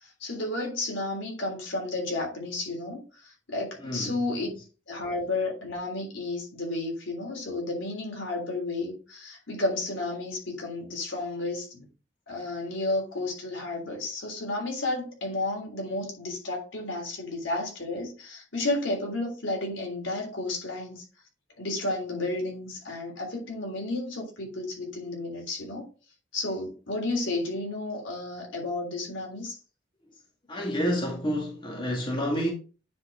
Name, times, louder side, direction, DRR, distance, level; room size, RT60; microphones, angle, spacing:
voice 1, 0.0-4.5 4.9-11.9 12.3-21.0 21.6-25.8 26.3-29.6, left 2 dB, 75° left, 3.4 m, -32 dB
voice 2, 3.8-4.2 30.5-32.5, equal, 25° left, 1.8 m, -29 dB
9.5 x 4.2 x 3.6 m
head